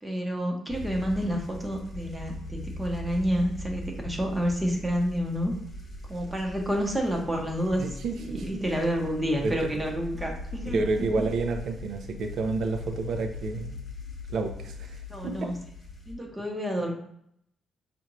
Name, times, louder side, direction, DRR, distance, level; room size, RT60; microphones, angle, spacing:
voice 1, 0.0-5.5 6.1-7.8 8.2-11.3 15.1-15.6 16.1-16.9, equal, 10° right, 1 dB, 0.7 m, -29 dB
sound 1, 0.7-16.1, left 2 dB, 40° left, 1.1 m, -40 dB
voice 2, 7.8-8.6 9.4-9.8 10.7-13.8 14.3-15.5, right 3 dB, 65° right, 5 dB, 0.5 m, -30 dB
4.3 x 2.5 x 3.0 m, 0.71 s
cardioid pair, 90°, 0 cm